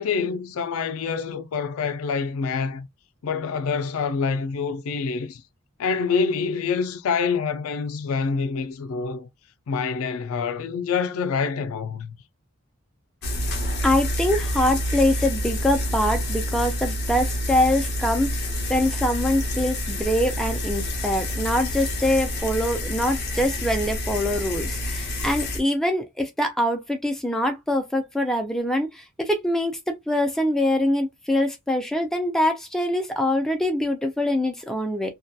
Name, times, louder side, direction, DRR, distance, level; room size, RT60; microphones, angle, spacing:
voice 1, 0.0-2.9 3.2-5.4 5.8-9.3 9.7-12.2, left 5 dB, 75° left, 0.4 m, -26 dB
sound 1, 13.2-25.6, left 1 dB, 50° left, 0.8 m, -28 dB
voice 2, 13.8-35.1, left 1 dB, ahead, 0.4 m, -24 dB
2.7 x 2.2 x 2.2 m
head